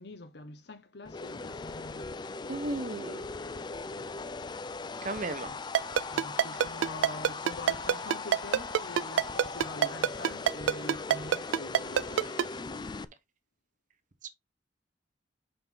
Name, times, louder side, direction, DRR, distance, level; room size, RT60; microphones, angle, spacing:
voice 1, 0.0-2.1 6.1-12.3, left 2 dB, 60° left, 1.1 m, -45 dB
sound 1, 1.0-13.0, left 4 dB, 25° left, 0.4 m, -39 dB
voice 2, 2.5-3.3 5.0-5.5, right 2 dB, 45° right, 1.0 m, -34 dB
Ringtone, 5.7-12.4, right 8 dB, 85° right, 0.3 m, -24 dB
5.8 x 5.4 x 3.8 m
head